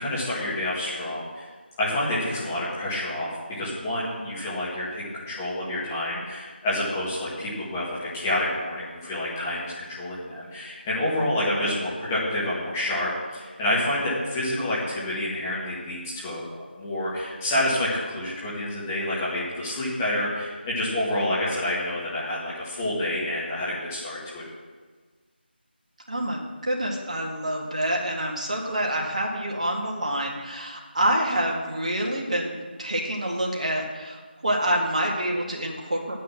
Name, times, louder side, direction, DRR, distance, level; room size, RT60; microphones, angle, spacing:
voice 1, 0.0-1.5 1.8-24.4, left 1 dB, 10° left, -8 dB, 1.8 m, -28 dB
voice 2, 26.1-36.2, right 1 dB, 40° right, 0 dB, 2.0 m, -27 dB
11.0 x 9.3 x 6.1 m, 1.4 s
figure-of-eight pair, 165°, 6 cm